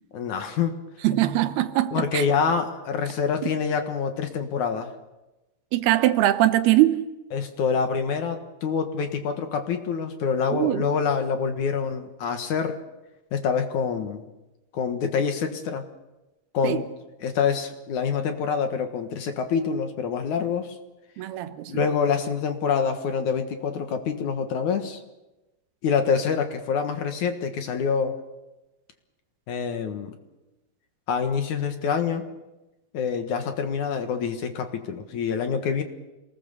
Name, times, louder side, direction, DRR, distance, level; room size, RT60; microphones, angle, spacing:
voice 1, 0.1-0.8 1.9-4.9 7.3-12.8 13.3-14.2 14.7-15.8 16.5-16.9 17.2-20.8 21.7-25.0 25.8-28.2 29.5-30.1 31.1-32.3 32.9-35.8, left 6 dB, 60° left, 6 dB, 2.6 m, -26 dB
voice 2, 1.0-2.3 5.7-7.0 10.5-10.9 16.6-16.8 21.2-21.8, right 15 dB, 90° right, 10 dB, 3.0 m, -22 dB
27.0 x 19.5 x 6.9 m, 1.0 s
omnidirectional pair, 4.4 m